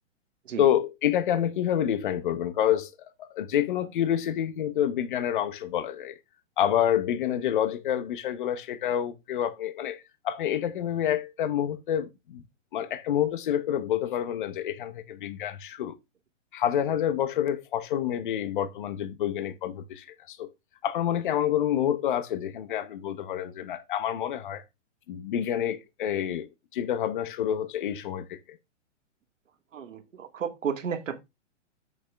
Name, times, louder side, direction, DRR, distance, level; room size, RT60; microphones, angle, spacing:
voice 1, 0.6-2.9 3.2-6.2 6.6-12.4 12.7-16.0 16.5-20.5 20.8-24.6 25.1-28.4, left 10 dB, 40° left, 1.0 m, -28 dB
voice 2, 29.7-31.2, right 7 dB, 80° right, 2.2 m, -33 dB
8.0 x 7.2 x 3.5 m
hypercardioid pair, 170°, 38 cm